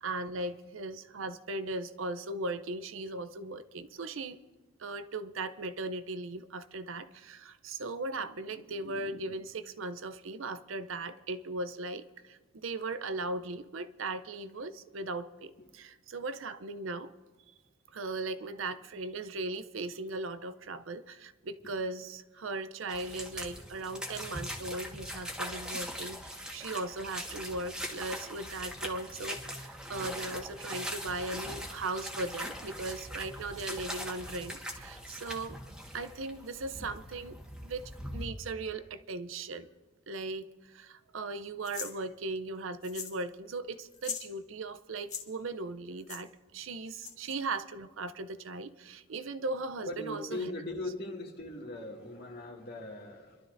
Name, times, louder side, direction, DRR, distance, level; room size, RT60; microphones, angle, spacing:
voice 1, 0.0-4.4 4.8-17.1 17.9-35.6 35.9-37.4 37.6-39.7 40.1-50.5, right 2 dB, 85° right, 0.6 m, -38 dB
voice 2, 18.0-18.4 49.8-53.4, left 2 dB, 55° left, 2.1 m, -40 dB
sound 1, 22.9-38.3, equal, 5° right, 1.5 m, -41 dB
sound 2, 41.6-41.9 42.8-43.2 43.5-43.6 43.9-44.3 45.0-45.2 46.1-46.2 47.0-47.3, left 6 dB, 35° left, 1.9 m, -40 dB
28.0 x 12.5 x 2.6 m
head